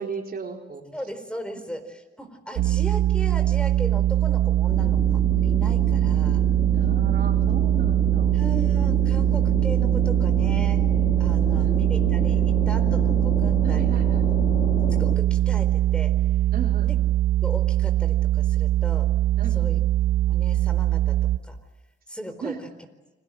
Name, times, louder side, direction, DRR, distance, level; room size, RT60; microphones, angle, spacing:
voice 1, 0.0-0.9 6.7-8.7 11.5-11.9 13.6-14.3 16.5-16.9 19.4-19.7 22.4-22.6, right 5 dB, 50° right, 2 dB, 4.3 m, -36 dB
voice 2, 0.9-6.4 8.3-10.8 11.2-14.0 14.9-16.2 16.8-16.9 17.4-19.1 19.5-19.8 20.3-21.2 21.4-21.6 22.1-22.7, equal, 5° left, 8 dB, 4.4 m, -37 dB
sound 1, 2.6-21.4, right 13 dB, 75° right, 1.3 m, -21 dB
sound 2, 4.7-15.2, left 3 dB, 35° left, 5.0 m, -32 dB
29.5 x 23.0 x 7.8 m, 1.1 s
cardioid pair, 90°, 20 cm